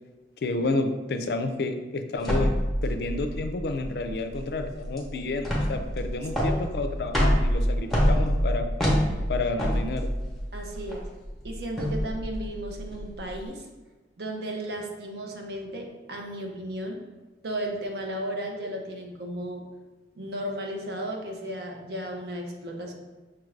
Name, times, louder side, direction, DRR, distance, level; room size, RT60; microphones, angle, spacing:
voice 1, 0.4-2.5 2.8-8.7 9.3-10.1, left 3 dB, 60° left, 8 dB, 0.3 m, -30 dB
sound 1, 2.2-13.4, equal, ahead, 0.7 m, -27 dB
voice 2, 6.2-6.6 10.5-11.1 11.4-13.7 14.2-17.1 17.4-19.7 20.2-22.9, right 1 dB, 65° right, 1 dB, 0.6 m, -34 dB
5.7 x 2.5 x 3.2 m, 1.2 s
head